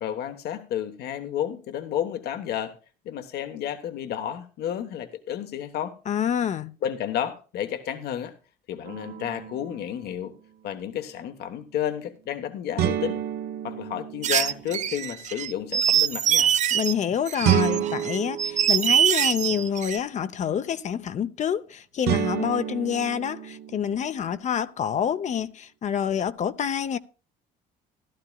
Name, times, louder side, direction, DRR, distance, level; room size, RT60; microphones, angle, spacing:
voice 1, 0.0-2.8 3.0-5.9 6.8-8.3 8.7-10.3 10.6-13.2 13.6-16.6, left 10 dB, 75° left, 1.3 m, -31 dB
voice 2, 6.1-6.7 16.7-27.0, left 8 dB, 45° left, 0.7 m, -27 dB
sound 1, 8.9-9.8 12.8-14.9 17.4-19.6 22.1-24.2, right 11 dB, 75° right, 1.0 m, -29 dB
sound 2, 14.2-16.9 17.3-20.0, right 9 dB, 45° right, 0.6 m, -23 dB
15.5 x 12.0 x 2.3 m
cardioid pair, 110°, 17 cm